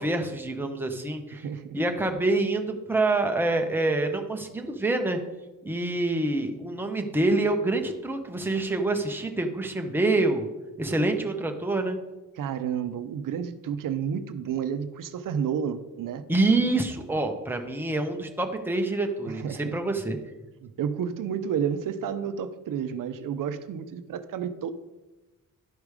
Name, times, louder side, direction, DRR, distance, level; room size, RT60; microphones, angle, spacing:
voice 1, 0.0-1.4 1.7-5.2 5.6-10.5 10.8-12.0 16.3-20.2, right 2 dB, 5° right, 4 dB, 0.7 m, -26 dB
voice 2, 1.3-1.8 12.4-16.3 19.3-19.8 20.6-24.7, right 8 dB, 80° right, 12 dB, 0.6 m, -31 dB
11.5 x 5.0 x 4.8 m, 1.1 s
wide cardioid pair, 170°, 33 cm